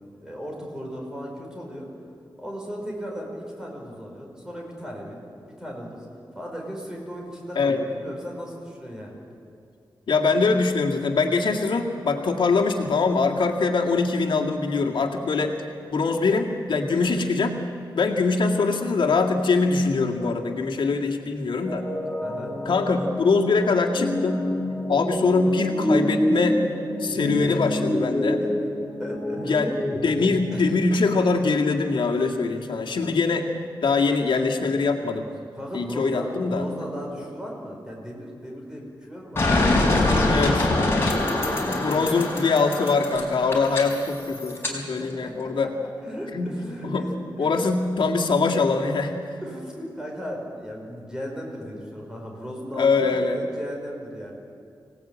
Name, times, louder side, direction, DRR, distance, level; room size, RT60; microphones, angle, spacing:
voice 1, 0.2-1.9 2.4-6.1 6.3-9.2 22.2-22.5 28.4-28.5 29.0-29.7 30.5-30.7 32.7-32.8 35.5-39.4 39.7-42.1 44.7-45.4 46.0-47.7 49.4-54.3, equal, 10° right, -1 dB, 5.1 m, -36 dB
voice 2, 7.5-7.8 10.1-15.5 15.9-17.5 17.9-21.9 22.6-24.4 24.9-26.6 27.0-28.4 29.5-29.7 30.0-33.4 33.8-35.3 35.7-36.7 40.3-40.7 41.7-45.7 46.3-46.5 46.8-47.1 47.4-49.1 52.8-53.4, left 4 dB, 85° left, 1 dB, 2.1 m, -23 dB
sound 1, 21.7-30.6, left 1 dB, 10° left, 2.4 m, -27 dB
sound 2, 39.4-44.7, left 2 dB, 30° left, 4.3 m, -24 dB
26.0 x 17.5 x 8.9 m, 2.5 s
wide cardioid pair, 180°, 8 cm